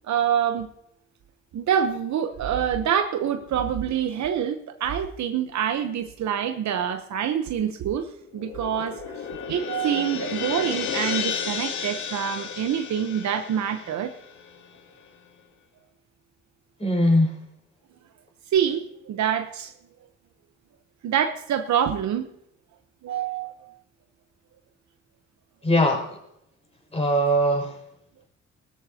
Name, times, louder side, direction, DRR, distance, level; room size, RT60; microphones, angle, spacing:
voice 1, 0.1-0.7 1.5-8.1 8.3-9.0 9.5-14.1 18.5-19.7 21.0-22.3 23.0-23.7, right 9 dB, 65° right, 1.0 m, -26 dB
sound 1, 8.2-14.8, left 7 dB, 75° left, 2.0 m, -33 dB
voice 2, 16.8-17.4 25.6-26.2 26.9-27.8, equal, 20° left, 5.7 m, -21 dB
19.0 x 13.5 x 2.9 m
cardioid pair, 90°, 30 cm